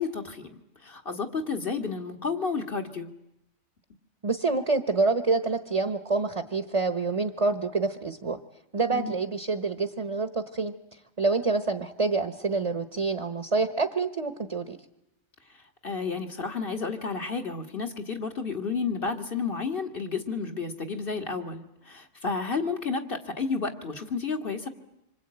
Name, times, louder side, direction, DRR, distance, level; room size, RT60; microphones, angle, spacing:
voice 1, 0.0-3.1 8.9-9.1 15.8-24.7, left 4 dB, 50° left, 5 dB, 2.2 m, -31 dB
voice 2, 4.2-8.4 8.7-10.7 11.2-14.8, right 3 dB, 30° right, 9 dB, 1.1 m, -27 dB
26.5 x 24.5 x 8.9 m, 0.83 s
omnidirectional pair, 1.2 m